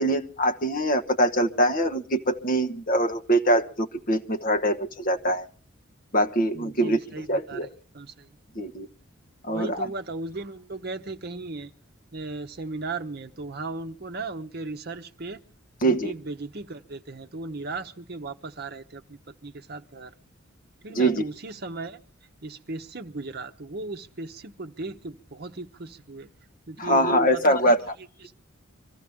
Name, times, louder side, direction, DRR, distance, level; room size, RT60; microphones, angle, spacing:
voice 1, 0.0-5.5 6.1-7.0 7.3-7.7 8.5-8.9 9.4-9.8 15.8-16.1 20.9-21.2 26.8-27.8, right 1 dB, 40° left, 1.1 m, -23 dB
voice 2, 6.5-7.7 7.9-8.4 9.5-11.7 12.1-15.4 15.8-20.1 20.8-22.0 22.4-26.3 26.7-27.6 28.2-28.3, right 3 dB, 50° right, 0.8 m, -36 dB
25.0 x 14.5 x 3.6 m
head